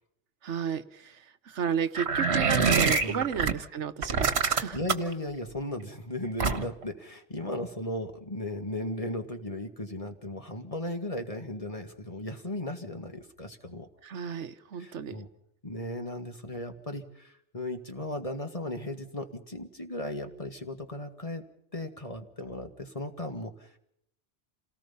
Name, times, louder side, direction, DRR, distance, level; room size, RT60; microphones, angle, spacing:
voice 1, 0.4-4.8 14.0-15.2, right 7 dB, 80° right, 11 dB, 1.3 m, -33 dB
sound 1, 1.9-3.5 4.0-5.1 6.4-6.8, right 5 dB, 65° right, 1.6 m, -25 dB
voice 2, 4.7-13.9 14.8-15.3 15.6-21.4 21.7-23.8, left 1 dB, 30° left, 5 dB, 2.0 m, -36 dB
28.0 x 18.5 x 5.7 m, 0.74 s
omnidirectional pair, 1.2 m